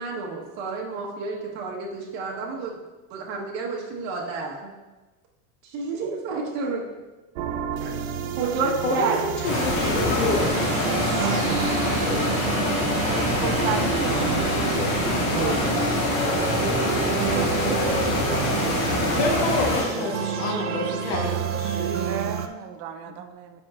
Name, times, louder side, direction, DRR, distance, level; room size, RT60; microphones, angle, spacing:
voice 1, 0.0-2.8 3.1-4.7 5.6-7.0 7.8-8.0 8.4-10.2 11.2-11.6 15.3-15.7 16.9-18.3, right 4 dB, 55° right, -2 dB, 1.5 m, -31 dB
sound 1, 7.4-22.5, right 9 dB, 85° right, 0.6 m, -30 dB
voice 2, 8.8-10.7 19.1-21.8, left 3 dB, 60° left, 0 dB, 1.4 m, -27 dB
sound 2, 9.4-19.8, left 1 dB, 35° left, 2.1 m, -24 dB
sound 3, 12.0-22.2, left 2 dB, 10° left, 0.7 m, -37 dB
voice 3, 13.0-15.0 22.0-23.3, right 7 dB, 40° right, 8 dB, 0.5 m, -33 dB
7.6 x 5.6 x 2.5 m, 1.2 s
supercardioid pair, 150°, 41 cm